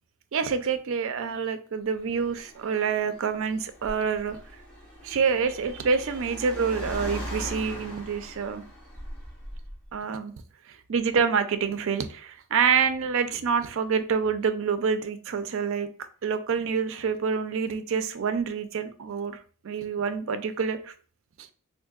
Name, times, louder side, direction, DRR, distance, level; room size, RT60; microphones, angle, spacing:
voice 1, 0.3-4.4 5.0-8.6 9.9-10.3 10.7-15.9 16.2-20.9 21.4-21.5, right 6 dB, 60° right, 10 dB, 0.4 m, -27 dB
Car, 2.0-9.9, equal, 5° left, 1.0 m, -40 dB
3.6 x 2.5 x 2.4 m, 0.41 s
head